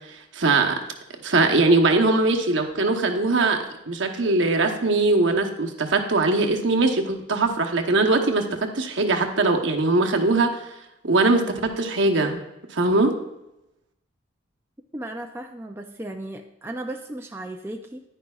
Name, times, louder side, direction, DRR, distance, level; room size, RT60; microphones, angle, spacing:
voice 1, 0.3-0.7 1.2-3.6 3.9-10.5 11.0-12.4 12.7-13.1, right 3 dB, 65° right, 3 dB, 0.9 m, -21 dB
voice 2, 14.9-18.0, right 1 dB, 10° right, 3 dB, 0.4 m, -35 dB
10.0 x 9.9 x 2.4 m, 0.91 s
head